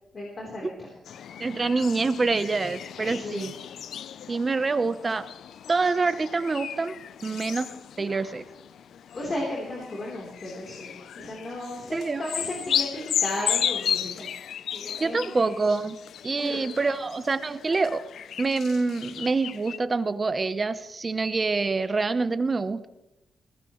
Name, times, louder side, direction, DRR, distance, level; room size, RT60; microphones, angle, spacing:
voice 1, 0.1-0.9 2.9-3.5 9.1-14.3 14.7-15.6 16.4-16.6, left 1 dB, 35° left, -3 dB, 3.5 m, -35 dB
sound 1, 1.0-19.8, left 9 dB, 75° left, 0.4 m, -34 dB
voice 2, 1.4-3.5 4.3-5.3 5.7-7.7 8.0-8.4 11.9-12.2 15.0-16.0 16.2-18.0 18.4-22.9, right 3 dB, 25° right, 12 dB, 0.8 m, -26 dB
21.0 x 17.0 x 3.1 m, 0.90 s
wide cardioid pair, 135°, 0 cm